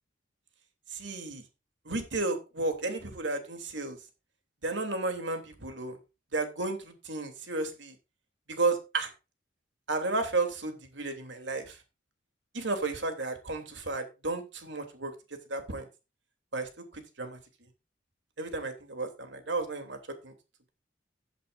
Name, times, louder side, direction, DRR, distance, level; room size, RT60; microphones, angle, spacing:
voice 1, 0.9-1.4 1.8-4.0 4.6-6.0 6.3-8.0 8.5-9.1 9.9-11.8 12.5-15.9 16.5-17.4 18.4-20.0 20.2-20.3, right 3 dB, 70° right, 5 dB, 3.0 m, -33 dB
15.0 x 8.8 x 2.6 m, 0.28 s
head